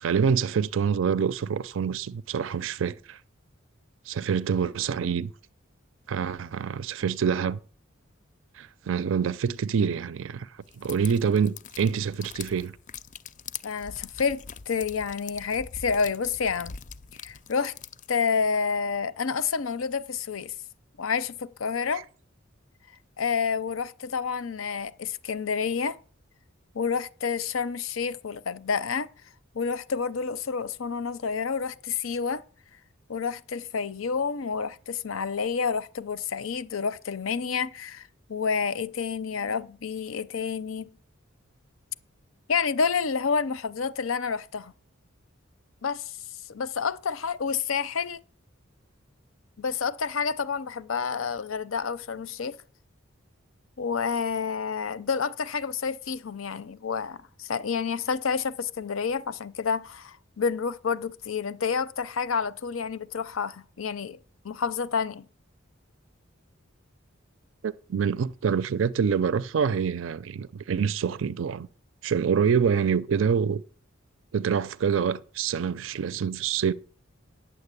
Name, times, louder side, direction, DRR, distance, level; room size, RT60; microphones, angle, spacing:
voice 1, 0.0-3.2 4.1-5.3 6.1-7.6 8.6-10.5 10.8-12.8 21.9-22.0 67.6-71.7 72.0-73.6 74.3-76.7, right 6 dB, 70° right, 0.4 m, -26 dB
sound 1, 10.7-18.1, left 7 dB, 40° left, 0.4 m, -43 dB
voice 2, 13.6-16.7 17.2-17.7 18.1-20.5 21.0-22.0 23.2-26.0 26.7-29.1 29.5-32.4 33.1-40.9 42.5-44.7 45.8-46.2 46.5-48.2 49.6-52.6 53.8-64.2 64.4-65.3, left 5 dB, 90° left, 0.7 m, -29 dB
9.6 x 7.2 x 8.2 m
head